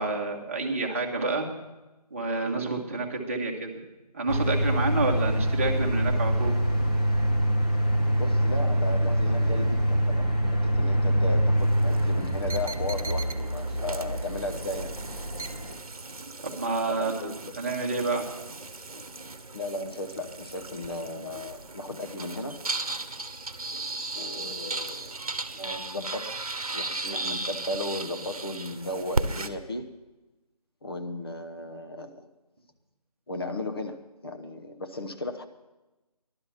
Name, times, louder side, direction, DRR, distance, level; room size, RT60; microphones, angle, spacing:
voice 1, 0.0-1.5 2.1-3.7 4.1-6.6 16.4-17.3 17.6-18.3, right 3 dB, 20° right, 1 dB, 1.2 m, -29 dB
sound 1, 4.3-15.7, equal, 10° left, 0.9 m, -25 dB
voice 2, 8.2-14.9 16.9-17.5 19.5-22.6 24.1-25.1 25.5-26.4 26.7-29.9 30.8-32.3 33.3-35.5, left 2 dB, 35° left, 6 dB, 1.0 m, -35 dB
sound 2, 11.6-29.5, right 3 dB, 60° right, 1.0 m, -36 dB
15.5 x 12.0 x 5.7 m, 1.1 s
figure-of-eight pair, 165°, 20 cm